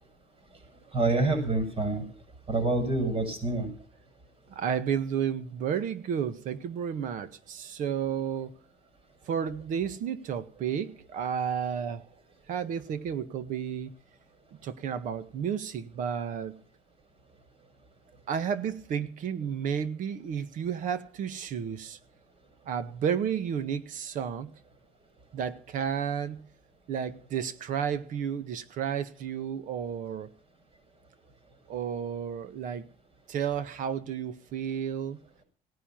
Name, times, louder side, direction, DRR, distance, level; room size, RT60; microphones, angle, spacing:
voice 1, 0.9-2.0 2.5-3.7, right 2 dB, 45° right, 6.7 m, -27 dB
voice 2, 4.5-8.5 9.3-12.0 12.5-13.9 14.5-16.6 18.3-22.0 22.6-24.5 25.3-26.4 26.9-30.3 31.7-32.9 33.3-35.2, right 8 dB, 70° right, 1.6 m, -32 dB
17.5 x 10.5 x 5.9 m
cardioid pair, 95°, 14 cm